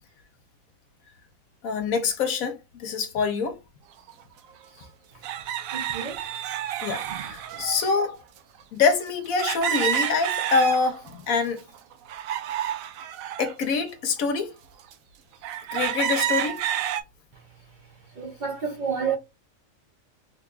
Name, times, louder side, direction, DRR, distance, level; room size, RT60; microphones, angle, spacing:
voice 1, 1.6-3.6 6.8-8.2 8.7-11.6 13.4-14.5 15.7-16.6, left 5 dB, 90° left, 1.3 m, -25 dB
sound 1, 4.1-4.2 5.2-8.0 9.4-11.1 11.6-13.5 14.2-14.3 14.9-15.0 15.4-17.0, right 10 dB, 80° right, 1.0 m, -29 dB
voice 2, 5.6-6.4 7.1-7.3 7.6-7.8 18.2-19.2, right 6 dB, 45° right, 0.7 m, -31 dB
3.5 x 2.3 x 3.7 m
omnidirectional pair, 1.4 m